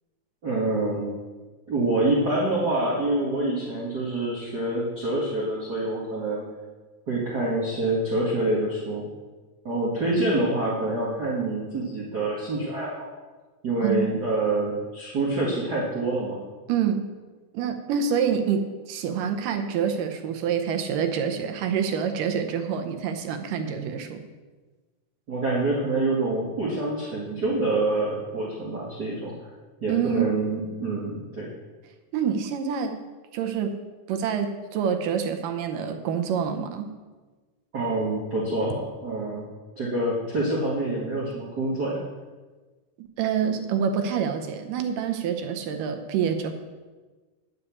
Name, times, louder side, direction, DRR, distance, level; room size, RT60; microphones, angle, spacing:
voice 1, 0.4-1.0 1.7-6.4 7.1-9.0 9.6-13.1 13.6-16.4 25.3-29.3 29.8-31.5 37.7-39.5 39.8-42.0, right 2 dB, 35° right, -7 dB, 1.9 m, -26 dB
voice 2, 13.8-14.1 16.7-17.0 17.5-24.2 29.9-30.3 32.1-33.0 33.3-33.8 34.1-36.9 43.0-46.5, right 7 dB, 90° right, 6 dB, 2.5 m, -27 dB
9.8 x 6.6 x 7.1 m, 1.3 s
omnidirectional pair, 3.7 m